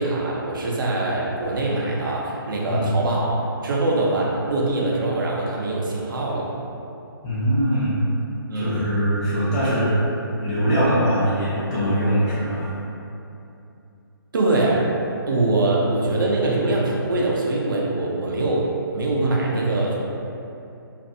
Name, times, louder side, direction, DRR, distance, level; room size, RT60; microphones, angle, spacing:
voice 1, 0.0-6.5 8.5-8.9 14.3-14.8 15.3-18.6 18.9-20.0, right 2 dB, 60° right, -3 dB, 0.6 m, -23 dB
voice 2, 7.2-8.0 8.5-9.9 10.4-12.7, equal, 20° left, -11 dB, 0.7 m, -22 dB
2.5 x 2.5 x 2.6 m, 2.7 s
hypercardioid pair, 165°, 13 cm